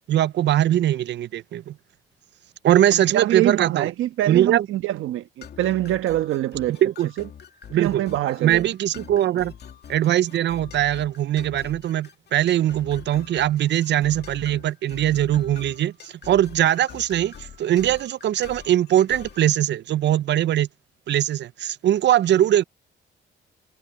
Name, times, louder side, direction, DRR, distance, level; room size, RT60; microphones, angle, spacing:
voice 1, 0.1-1.7 2.6-3.9 4.3-4.7 6.8-7.1 7.7-8.0 8.4-9.5 9.9-17.3 17.6-20.7 21.1-22.6, right 12 dB, 65° right, 0.6 m, -21 dB
voice 2, 2.9-6.8 7.2-7.3 7.7-8.7 9.0-9.1, right 14 dB, 85° right, 1.3 m, -25 dB
sound 1, 5.4-19.5, left 8 dB, 55° left, 2.3 m, -44 dB
cardioid pair, 90°, 20 cm